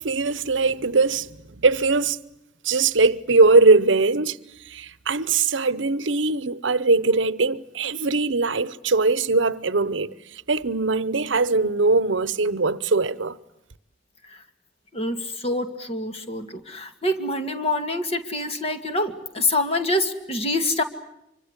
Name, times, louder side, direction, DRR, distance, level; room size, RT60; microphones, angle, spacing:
voice 1, 0.0-2.2 2.6-4.4 4.7-13.4, right 3 dB, 80° right, 0.9 m, -21 dB
voice 2, 14.9-20.8, left 1 dB, 30° left, 2.3 m, -26 dB
25.5 x 25.0 x 8.2 m
head